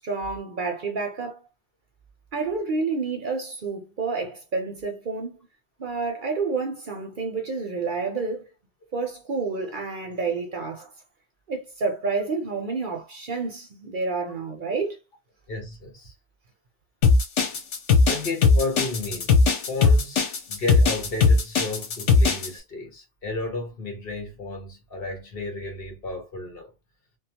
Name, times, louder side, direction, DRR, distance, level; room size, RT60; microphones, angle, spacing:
voice 1, 0.0-1.4 2.3-5.4 5.8-8.5 8.9-10.9 11.5-15.0, right 4 dB, 50° right, 0.8 m, -29 dB
voice 2, 15.5-16.1 18.1-26.7, left 2 dB, 55° left, 1.3 m, -33 dB
sound 1, 17.0-22.5, left 4 dB, 85° left, 1.1 m, -18 dB
3.0 x 2.0 x 2.8 m
omnidirectional pair, 1.2 m